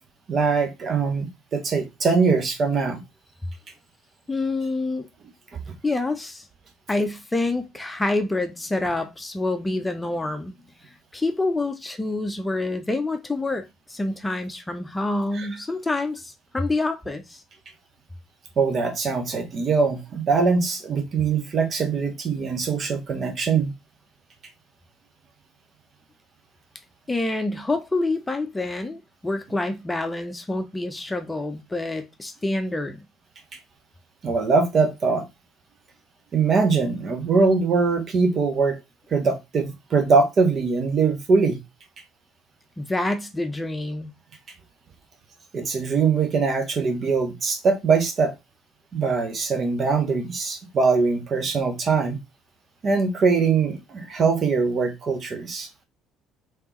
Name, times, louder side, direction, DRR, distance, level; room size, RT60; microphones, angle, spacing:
voice 1, 0.3-3.0 15.3-15.5 18.6-23.7 34.2-35.2 36.3-38.8 39.1-41.6 45.5-48.3 48.9-52.2 52.8-55.7, right 4 dB, 45° right, 1.0 m, -22 dB
voice 2, 4.3-5.1 5.8-6.4 6.9-10.5 10.8-17.4 27.1-33.0 42.8-44.1, left 2 dB, 15° left, 0.7 m, -27 dB
3.4 x 3.2 x 3.0 m
hypercardioid pair, 55°, 0 cm